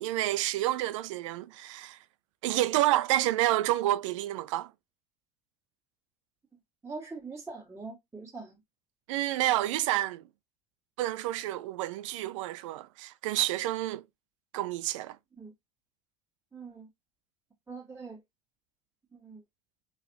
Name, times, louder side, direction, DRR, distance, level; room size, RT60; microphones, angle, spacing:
voice 1, 0.0-2.0 2.4-4.7 9.1-10.2 11.0-14.0 14.5-15.2, right 15 dB, 65° right, 0.5 m, -29 dB
voice 2, 6.8-8.5 15.4-15.5 16.5-16.9 17.7-18.2 19.1-19.4, right 4 dB, 15° right, 1.9 m, -43 dB
4.0 x 3.2 x 3.2 m
figure-of-eight pair, 65°, 17 cm